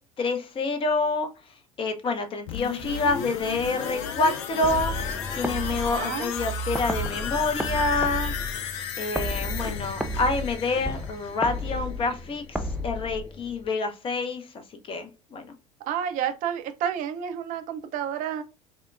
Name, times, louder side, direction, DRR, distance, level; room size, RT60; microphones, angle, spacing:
voice 1, 0.2-8.3 9.0-15.5, left 3 dB, 30° left, 0.8 m, -28 dB
sound 1, 2.5-12.2 12.5-12.6, left 8 dB, 55° left, 0.5 m, -34 dB
sound 2, 4.6-13.7, equal, ahead, 0.4 m, -33 dB
voice 2, 5.9-6.3 15.9-18.4, right 9 dB, 45° right, 0.7 m, -30 dB
5.7 x 2.2 x 2.4 m
figure-of-eight pair, 65°, 19 cm